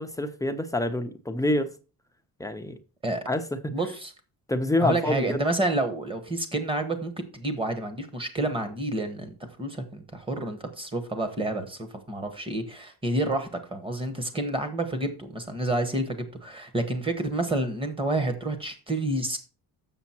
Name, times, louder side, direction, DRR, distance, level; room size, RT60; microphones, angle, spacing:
voice 1, 0.0-1.7 2.4-2.8 3.3-3.7 4.5-5.4, left 1 dB, 10° left, 0.5 m, -27 dB
voice 2, 3.7-4.1 4.8-19.4, right 2 dB, 15° right, 1.1 m, -29 dB
7.1 x 6.7 x 4.3 m
cardioid pair, 165°, 36 cm